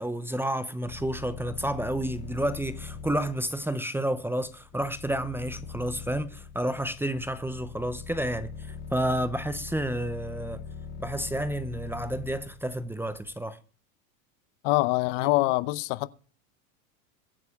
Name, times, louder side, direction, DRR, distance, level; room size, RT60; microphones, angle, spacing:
voice 1, 0.0-10.6 11.0-13.6, right 1 dB, 5° right, 0.7 m, -30 dB
sound 1, 0.8-13.3, left 6 dB, 25° left, 3.8 m, -42 dB
voice 2, 14.6-16.1, left 20 dB, 60° left, 0.8 m, -24 dB
23.0 x 9.5 x 2.4 m
hypercardioid pair, 105°, 43 cm